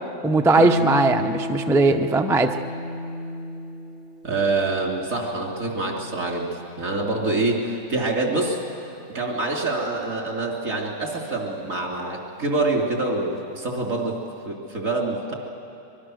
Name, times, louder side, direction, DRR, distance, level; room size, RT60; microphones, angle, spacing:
voice 1, 0.2-2.5, right 2 dB, 5° right, 5 dB, 0.4 m, -19 dB
Harp, 0.6-7.1 8.7-9.7, left 1 dB, 45° right, 1.6 m, -33 dB
voice 2, 4.2-6.5 6.8-15.3, right 2 dB, 75° right, 0 dB, 3.2 m, -26 dB
24.0 x 22.0 x 6.4 m, 2.7 s
omnidirectional pair, 1.4 m